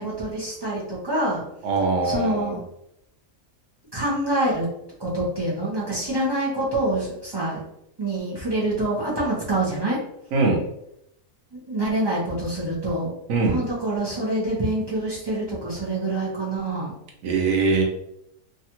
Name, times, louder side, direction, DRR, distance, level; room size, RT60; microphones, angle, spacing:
voice 1, 0.0-1.4 2.0-2.6 3.9-4.7 5.0-7.6 8.0-10.0 11.5-13.1 13.4-16.9, right 1 dB, 25° right, -6 dB, 0.5 m, -26 dB
voice 2, 1.6-2.5 10.3-10.6 13.3-13.6 17.2-17.8, right 3 dB, 65° right, 1 dB, 1.0 m, -21 dB
3.2 x 2.4 x 2.8 m, 0.77 s
omnidirectional pair, 1.5 m